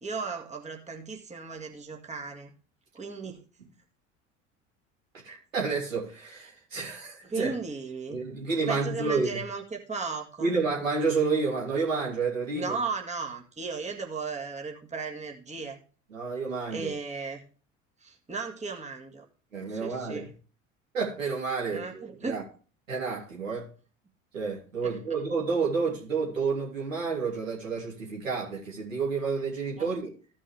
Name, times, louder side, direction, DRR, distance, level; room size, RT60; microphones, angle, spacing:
voice 1, 0.0-2.5 2.9-3.4 7.2-8.2 8.7-10.6 12.5-15.8 16.7-17.4 18.0-19.2 19.7-20.3 21.7-22.4 24.8-25.0 29.8-29.9, right 4 dB, 15° right, 2.0 m, -35 dB
voice 2, 5.2-7.5 8.1-9.4 10.4-12.8 16.1-16.9 19.5-20.3 20.9-22.4 22.9-23.7 24.3-30.1, right 4 dB, 85° right, 3.2 m, -30 dB
15.0 x 5.5 x 3.4 m
figure-of-eight pair, 65°, 39 cm